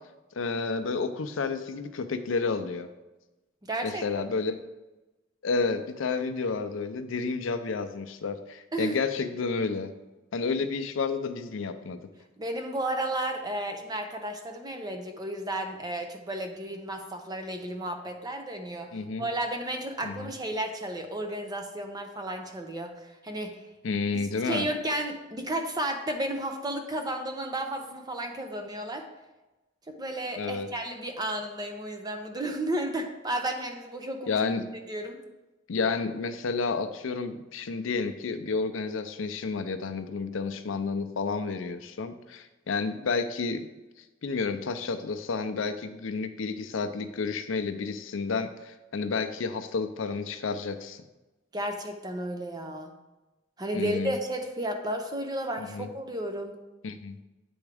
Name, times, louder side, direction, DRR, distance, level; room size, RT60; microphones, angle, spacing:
voice 1, 0.3-2.9 3.8-4.5 5.4-9.9 10.3-12.0 18.9-19.3 20.0-20.3 23.8-24.7 30.4-30.7 34.3-34.7 35.7-43.7 44.2-51.0 53.7-54.1 55.6-55.9 56.8-57.2, left 4 dB, 80° left, 9 dB, 0.5 m, -30 dB
voice 2, 3.7-4.0 8.7-9.0 12.4-23.5 24.4-29.0 29.9-34.4 34.9-35.2 51.5-52.9 53.6-56.6, right 1 dB, 20° right, 4 dB, 0.7 m, -33 dB
9.4 x 3.5 x 3.4 m, 1.1 s
head